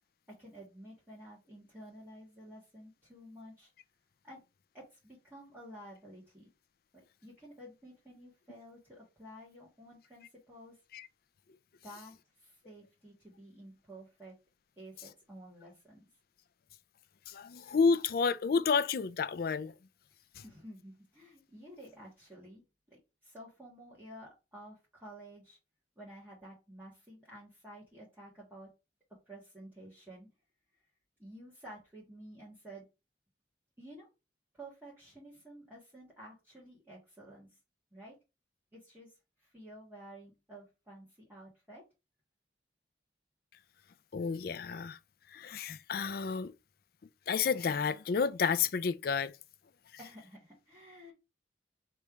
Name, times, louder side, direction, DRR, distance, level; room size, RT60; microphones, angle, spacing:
voice 1, 0.3-3.7 4.2-4.4 4.7-6.5 6.9-10.8 11.8-14.4 14.8-16.1 20.4-25.6 26.0-28.7 29.1-30.3 31.2-32.9 33.8-34.1 34.5-37.6 37.9-38.1 38.7-41.8 50.0-51.1, right 1 dB, 10° right, 1.5 m, -52 dB
voice 2, 17.3-19.7 20.4-20.5 44.1-45.0 45.3-46.5 47.3-49.3, left 5 dB, 55° left, 0.4 m, -30 dB
3.3 x 3.1 x 4.7 m
head